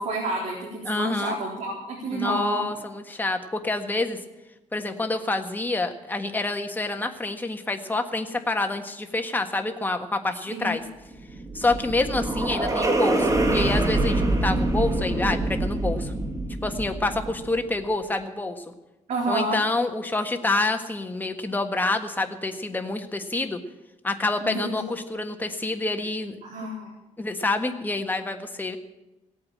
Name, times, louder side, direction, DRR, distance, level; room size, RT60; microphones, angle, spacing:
voice 1, 0.0-2.6 10.5-10.7 19.1-19.6 24.4-24.8 26.4-26.9, right 2 dB, 65° right, -3 dB, 4.0 m, -29 dB
voice 2, 0.8-1.4 2.1-4.2 4.7-10.8 11.5-16.1 16.6-18.6 19.3-23.6 24.0-26.4 27.2-28.8, left 2 dB, 15° left, 5 dB, 1.5 m, -27 dB
sound 1, 11.1-17.6, right 2 dB, 25° right, 2.3 m, -25 dB
17.5 x 8.8 x 8.7 m, 0.99 s
cardioid pair, 110°, 13 cm